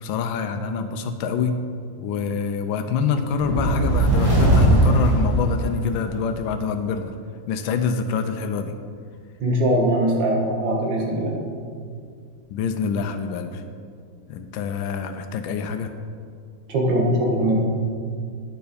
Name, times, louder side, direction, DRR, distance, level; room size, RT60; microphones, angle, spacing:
voice 1, 0.0-1.6 2.0-7.1 7.5-8.7 12.5-13.6 14.3-15.9, left 5 dB, 80° left, 7 dB, 1.3 m, -26 dB
sound 1, 3.3-6.1, right 1 dB, 15° right, 1.5 m, -19 dB
voice 2, 9.4-11.3 16.7-17.5, right 1 dB, 70° right, -1 dB, 2.1 m, -21 dB
9.0 x 7.0 x 5.0 m, 2.2 s
omnidirectional pair, 2.1 m